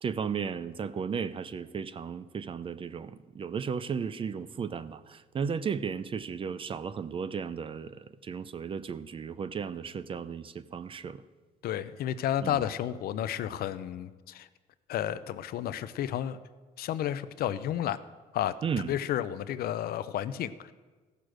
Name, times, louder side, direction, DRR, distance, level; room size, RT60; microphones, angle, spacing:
voice 1, 0.0-11.2 12.4-12.7 18.6-18.9, right 6 dB, 30° right, 15 dB, 0.5 m, -35 dB
voice 2, 11.6-14.5 14.9-16.4 16.8-18.0 18.3-18.5 18.9-20.7, left 11 dB, 65° left, 14 dB, 0.6 m, -32 dB
15.0 x 6.7 x 6.2 m, 1.3 s
cardioid pair, 110°, 17 cm